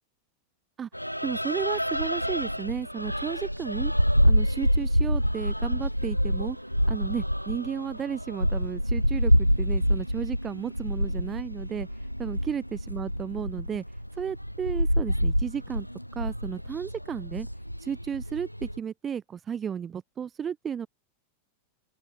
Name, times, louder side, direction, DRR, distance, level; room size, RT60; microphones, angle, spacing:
sound 1, 0.9-18.8, equal, 90° left, 0.6 m, -27 dB
voice 1, 1.2-3.9 4.2-6.6 6.9-11.9 12.2-13.8 14.2-15.9 16.1-17.5 17.8-20.9, right 8 dB, 20° right, 4.0 m, -33 dB
open air
figure-of-eight pair, 90°, 0 cm